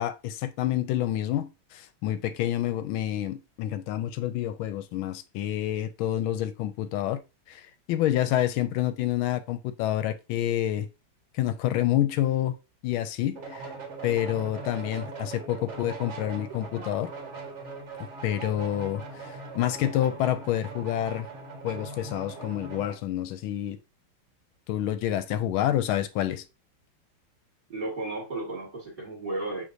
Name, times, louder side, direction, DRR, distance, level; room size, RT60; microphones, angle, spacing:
voice 1, 0.0-7.2 7.5-10.9 11.3-12.5 12.8-13.7 14.0-17.1 18.0-21.3 21.6-23.8 24.7-26.4, left 12 dB, 85° left, 1.4 m, -28 dB
sound 1, 13.3-23.0, right 4 dB, 50° right, 1.0 m, -40 dB
voice 2, 27.7-29.6, right 2 dB, 30° right, 1.6 m, -33 dB
6.4 x 3.2 x 2.6 m
omnidirectional pair, 2.2 m